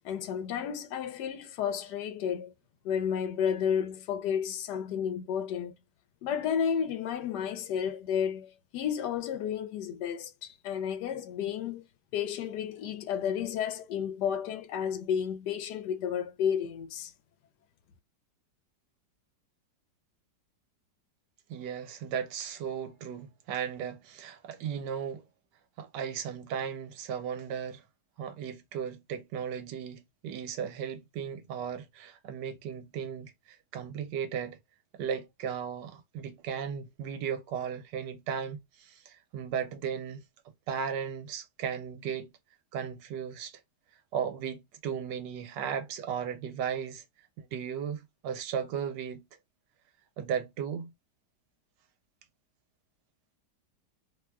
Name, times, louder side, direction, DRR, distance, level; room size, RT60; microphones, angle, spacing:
voice 1, 0.0-2.5 2.8-5.7 6.2-11.8 12.1-17.1, left 8 dB, 75° left, 1.1 m, -32 dB
voice 2, 21.5-25.2 25.8-27.8 28.2-34.6 34.9-40.2 40.7-42.3 42.7-43.6 44.1-47.0 47.4-49.2 50.2-50.9, right 8 dB, 75° right, 1.3 m, -36 dB
3.0 x 2.1 x 3.4 m
omnidirectional pair, 1.9 m